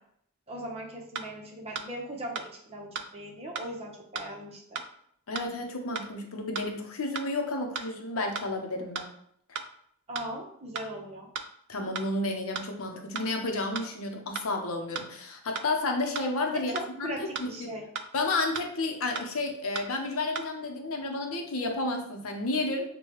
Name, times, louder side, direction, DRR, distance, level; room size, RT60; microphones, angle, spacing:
voice 1, 0.5-4.8 10.1-11.3 16.5-17.9, right 1 dB, 30° right, 0 dB, 0.8 m, -39 dB
sound 1, 1.2-1.3 1.8-1.9 2.4-2.5 3.0-3.1 3.6-3.7 4.2-4.3 4.8-4.9 5.4-5.5 6.0-6.1 6.6-6.7 7.2-7.3 7.8-7.9 8.4-8.5 9.0-9.1 9.6-9.7 10.2-10.3 10.8-10.9 11.4-11.5 12.0-12.1 12.6-12.7 13.2-13.3 13.8-13.9 14.4-14.5 15.0-15.1 15.6-15.7 16.2-16.3 16.8-16.9 17.4-17.5 18.0-18.1 18.6-18.7 19.2-19.3 19.8-19.9 20.4-20.5, right 6 dB, 55° right, 0.4 m, -35 dB
voice 2, 5.3-9.0 9.5-9.6 11.7-17.7 18.1-22.9, left 2 dB, 70° left, 3 dB, 0.7 m, -31 dB
6.4 x 2.2 x 3.0 m, 0.68 s
head